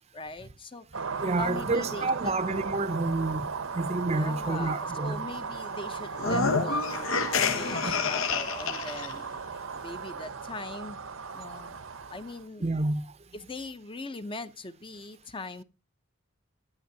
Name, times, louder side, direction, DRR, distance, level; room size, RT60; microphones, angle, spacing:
voice 1, 0.1-0.9 1.4-2.3 4.1-7.1 7.5-11.0 11.3-11.8 12.1-12.7 13.3-15.6, left 3 dB, 25° left, 0.6 m, -41 dB
sound 1, 0.9-12.5, right 5 dB, 80° right, 0.8 m, -36 dB
voice 2, 1.2-3.5 3.7-5.2 12.6-13.0, right 2 dB, 30° right, 0.6 m, -29 dB
sound 2, 6.1-9.1, left 4 dB, 85° left, 1.1 m, -28 dB
15.0 x 10.0 x 2.7 m
head